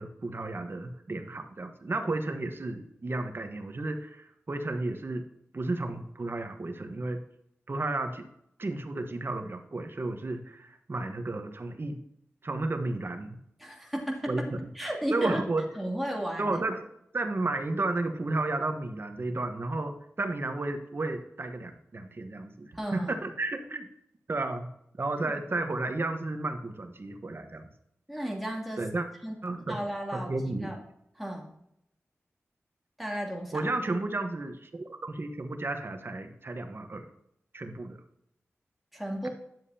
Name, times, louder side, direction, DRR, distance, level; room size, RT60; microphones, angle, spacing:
voice 1, 0.0-5.3 5.5-7.2 7.7-8.3 8.6-12.0 12.4-13.4 14.3-14.4 15.1-15.7 16.4-16.9 17.1-23.9 24.3-24.7 25.0-27.7 28.8-29.1 29.4-29.8 30.1-30.7 33.5-37.1 37.5-38.0, right 2 dB, 50° right, 6 dB, 1.2 m, -32 dB
voice 2, 13.6-15.5 15.7-16.6 22.7-23.1 28.1-28.9 29.2-29.4 29.7-30.8 31.2-31.5 33.0-33.7 38.9-39.3, equal, ahead, -1 dB, 2.6 m, -34 dB
10.5 x 7.3 x 2.8 m, 0.76 s
cardioid pair, 50°, 5 cm